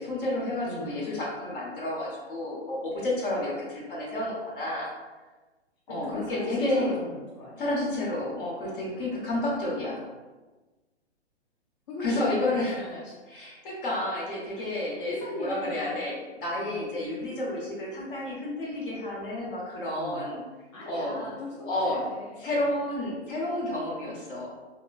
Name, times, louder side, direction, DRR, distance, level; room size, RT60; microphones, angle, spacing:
voice 1, 0.0-4.9 5.9-6.9 7.6-10.0 12.0-20.4 20.9-21.2 21.6-22.0 22.4-24.5, left 1 dB, 50° left, -4 dB, 1.0 m, -30 dB
voice 2, 0.6-1.0 5.9-7.7 8.6-8.9 11.9-12.2 12.5-12.6 13.0-13.2 14.5-14.7 15.1-16.0 16.5-16.8 20.0-20.2 20.7-22.6 24.0-24.2, left 1 dB, 30° left, -5 dB, 0.4 m, -39 dB
2.9 x 2.2 x 2.4 m, 1.2 s
figure-of-eight pair, 120°, 33 cm